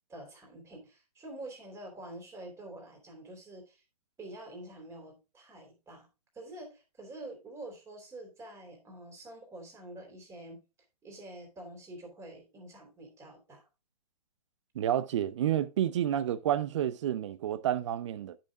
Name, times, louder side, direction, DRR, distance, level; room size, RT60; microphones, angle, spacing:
voice 1, 0.1-3.8 4.2-6.1 6.3-10.6 11.0-13.7, right 1 dB, 15° right, 3.0 m, -47 dB
voice 2, 14.7-18.4, right 11 dB, 50° right, 0.7 m, -30 dB
10.0 x 5.8 x 3.5 m
hypercardioid pair, 135°, 21 cm